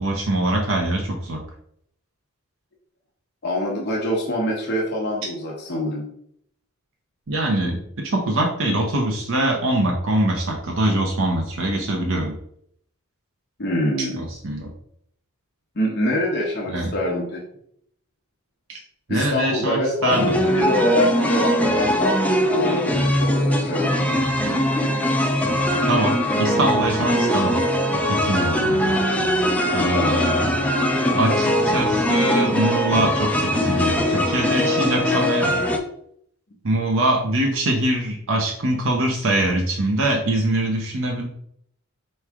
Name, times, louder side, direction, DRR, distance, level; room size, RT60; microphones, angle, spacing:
voice 1, 0.0-1.4 7.3-12.3 14.0-14.7 16.7-16.9 18.7-18.8 19.1-20.4 25.9-27.6 28.0-29.0 29.7-30.5 31.1-35.6 36.6-41.3, right 1 dB, 65° right, 1 dB, 0.7 m, -23 dB
voice 2, 3.4-6.1 13.6-14.2 15.7-17.4 19.1-20.1 20.4-22.1 22.6-24.2 29.9-30.3, left 1 dB, 50° left, -2 dB, 0.9 m, -25 dB
sound 1, 20.1-35.8, equal, 5° left, 0.4 m, -21 dB
4.6 x 3.1 x 3.5 m, 0.69 s
head